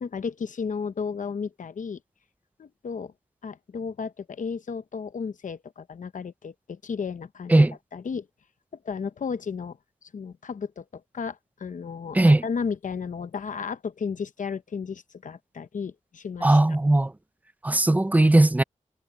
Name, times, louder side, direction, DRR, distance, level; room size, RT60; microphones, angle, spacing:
voice 1, 0.0-2.0 2.6-3.1 3.4-7.7 7.9-8.3 8.8-9.8 10.0-16.6, left 5 dB, 75° left, 0.8 m, -33 dB
voice 2, 16.4-17.1 17.6-18.6, right 2 dB, 10° right, 0.4 m, -18 dB
wide cardioid pair, 120°, 13 cm